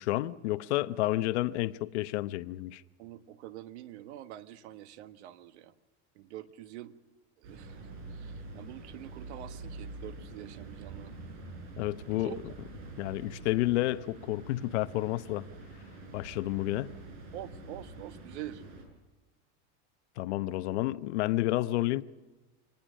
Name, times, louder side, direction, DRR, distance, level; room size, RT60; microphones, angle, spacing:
voice 1, 0.0-2.8 11.8-12.3 13.0-15.4 16.1-16.9 20.2-22.0, left 17 dB, 80° left, 0.9 m, -30 dB
voice 2, 3.0-5.7 6.1-6.9 7.4-11.2 12.2-12.4 17.3-18.6, right 13 dB, 80° right, 1.5 m, -45 dB
sound 1, 7.4-18.8, right 3 dB, 45° right, 7.2 m, -46 dB
25.5 x 19.5 x 6.4 m
supercardioid pair, 175°, 34 cm